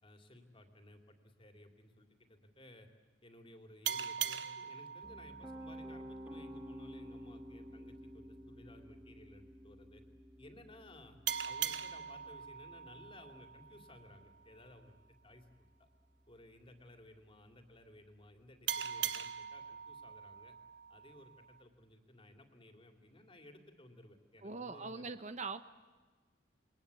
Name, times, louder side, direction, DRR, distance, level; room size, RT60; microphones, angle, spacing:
voice 1, 0.0-2.9 3.2-10.0 10.4-11.2 11.4-14.9 15.2-15.9 16.3-20.6 20.9-25.1, left 1 dB, 30° left, 6 dB, 3.0 m, -58 dB
sound 1, 3.8-7.1 11.3-14.5 18.7-21.6, right 9 dB, 65° right, 0.9 m, -42 dB
Piano, 5.0-16.9, equal, 10° right, 1.2 m, -53 dB
voice 2, 24.4-25.7, right 4 dB, 40° right, 11 dB, 1.0 m, -42 dB
28.0 x 22.5 x 8.4 m, 1.3 s
head